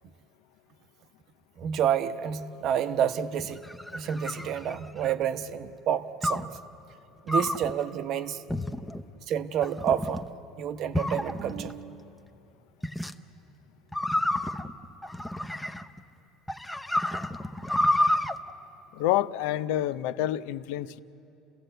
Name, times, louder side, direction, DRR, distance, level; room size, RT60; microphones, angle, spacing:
voice 1, 1.6-3.6 3.9-6.5 7.2-8.4 9.3-10.3 10.6-12.0, right 9 dB, 55° right, 0.9 m, -29 dB
sound 1, 3.4-5.2 6.2-6.6 7.3-7.7 8.5-9.0 9.6-10.2 10.9-11.7 12.8-13.1 13.9-16.0 16.5-18.3, left 1 dB, 5° left, 0.7 m, -29 dB
voice 2, 18.9-21.0, left 13 dB, 80° left, 0.6 m, -28 dB
29.5 x 16.0 x 7.9 m
cardioid pair, 125°, 0 cm